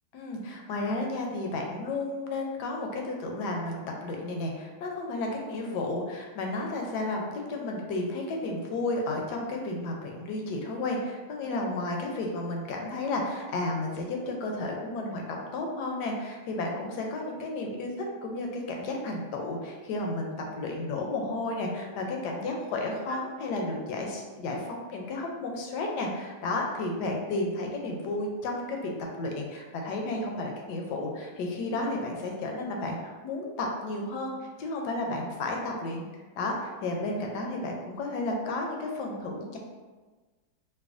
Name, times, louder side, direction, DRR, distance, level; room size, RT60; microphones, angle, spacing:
voice 1, 0.1-28.9 29.2-34.3 34.6-36.1 36.4-39.6, left 2 dB, 75° left, 1 dB, 1.1 m, -32 dB
4.7 x 2.2 x 2.4 m, 1.3 s
omnidirectional pair, 2.0 m